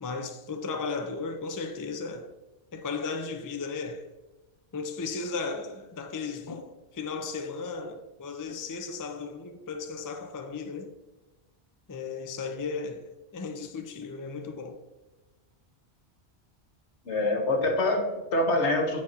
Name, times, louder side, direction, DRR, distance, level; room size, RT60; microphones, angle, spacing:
voice 1, 0.0-2.3 2.7-4.1 4.7-10.9 11.9-13.1 13.3-14.8, left 4 dB, 30° left, 0.4 m, -35 dB
voice 2, 17.0-19.0, left 2 dB, 80° left, 1.4 m, -25 dB
8.5 x 4.6 x 4.0 m
omnidirectional pair, 1.2 m